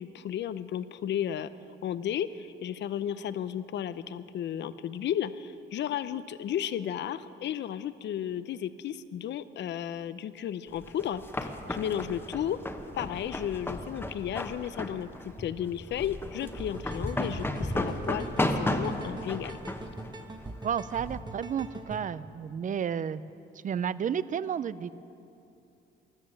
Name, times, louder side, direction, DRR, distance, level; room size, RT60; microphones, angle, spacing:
voice 1, 0.0-1.5 1.8-12.6 12.9-19.6, left 10 dB, 65° left, 14 dB, 0.6 m, -34 dB
sound 1, 10.8-21.2, left 1 dB, 10° left, 1.0 m, -34 dB
sound 2, 16.3-22.0, right 2 dB, 20° right, 1.2 m, -43 dB
voice 2, 20.6-23.2 23.6-24.9, right 8 dB, 40° right, 17 dB, 0.5 m, -31 dB
13.5 x 11.5 x 7.6 m, 2.7 s
cardioid pair, 90°, 20 cm